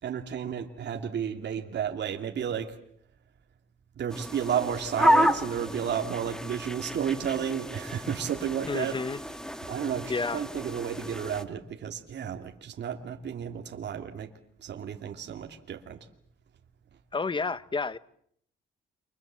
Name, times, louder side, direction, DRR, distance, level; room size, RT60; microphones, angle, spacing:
voice 1, 0.0-2.7 4.0-9.0 9.6-14.3 14.6-16.0, right 8 dB, 60° right, 3 dB, 2.7 m, -32 dB
sound 1, 4.1-11.4, equal, 5° left, 1.9 m, -30 dB
voice 2, 8.7-9.2 10.1-10.4 17.1-18.0, left 4 dB, 25° left, 16 dB, 1.2 m, -30 dB
30.0 x 26.0 x 7.6 m, 0.68 s
cardioid pair, 90°, 20 cm